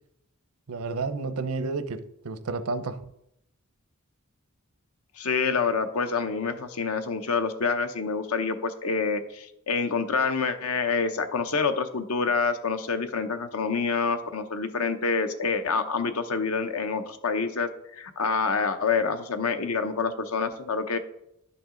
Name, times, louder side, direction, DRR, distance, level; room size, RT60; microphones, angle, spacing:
voice 1, 0.7-3.1, right 3 dB, 80° right, 11 dB, 0.6 m, -31 dB
voice 2, 5.2-21.0, left 5 dB, 75° left, 9 dB, 0.8 m, -27 dB
11.0 x 5.9 x 3.8 m, 0.82 s
head